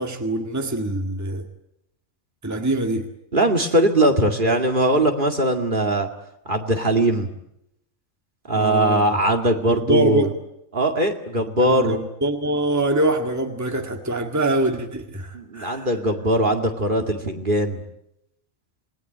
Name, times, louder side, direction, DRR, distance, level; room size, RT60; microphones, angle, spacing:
voice 1, 0.0-1.5 2.4-3.1 8.5-9.2 9.7-10.3 11.4-15.9, right 1 dB, 15° right, 4 dB, 2.0 m, -24 dB
voice 2, 3.3-6.1 6.5-7.3 8.5-10.3 10.7-12.0 15.3-17.8, right 1 dB, 40° right, 4 dB, 2.4 m, -20 dB
28.0 x 20.0 x 9.2 m, 0.82 s
omnidirectional pair, 1.4 m